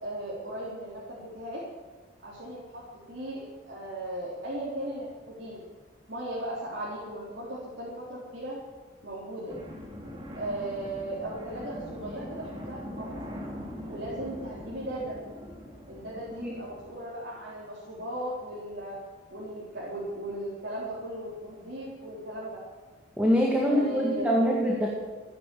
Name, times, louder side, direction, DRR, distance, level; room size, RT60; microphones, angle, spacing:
voice 1, 0.0-1.6 2.2-3.4 3.7-5.6 6.1-8.6 9.0-9.6 10.4-13.1 13.9-15.2 15.9-19.0 19.3-22.6 23.6-24.5, right 1 dB, 60° right, -7 dB, 3.8 m, -37 dB
sound 1, 9.5-16.9, equal, 25° right, 3.0 m, -41 dB
voice 2, 23.2-24.9, equal, 5° right, -2 dB, 1.9 m, -24 dB
15.5 x 10.5 x 7.7 m, 1.3 s
head